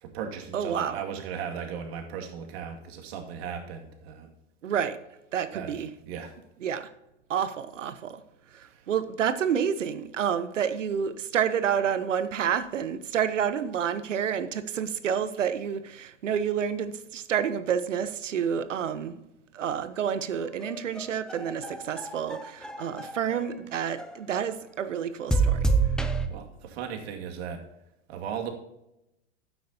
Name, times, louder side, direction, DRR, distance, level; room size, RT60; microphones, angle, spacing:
voice 1, 0.0-4.3 5.5-5.7 6.1-6.3 8.6-8.8 26.3-27.6 28.1-28.5, right 7 dB, 55° right, 3 dB, 2.3 m, -37 dB
voice 2, 0.5-1.0 4.6-5.0 5.3-5.9 6.6-6.9 7.3-8.2 8.5-19.2 19.5-25.7, right 8 dB, 80° right, 12 dB, 1.1 m, -29 dB
sound 1, 20.4-23.4 24.0-24.6 25.3-26.3, right 4 dB, ahead, 0.6 m, -28 dB
12.5 x 9.3 x 2.9 m, 0.88 s
hypercardioid pair, 110°, 37 cm